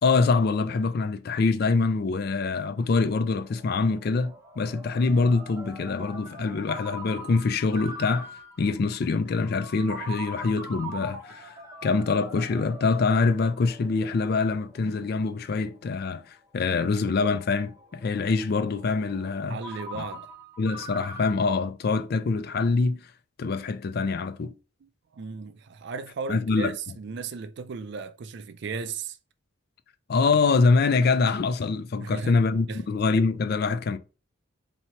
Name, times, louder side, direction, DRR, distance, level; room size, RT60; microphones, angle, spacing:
voice 1, 0.0-8.3 8.6-11.5 11.8-19.6 19.9-20.0 20.6-23.1 23.4-24.5 26.3-26.7 30.1-34.0, left 4 dB, 50° left, 0.3 m, -25 dB
Ringtone, 1.9-21.4, right 1 dB, 15° right, 0.6 m, -44 dB
voice 2, 19.5-20.3 25.1-29.2 32.0-32.4 32.7-32.8, right 5 dB, 55° right, 0.4 m, -35 dB
2.9 x 2.8 x 4.4 m
head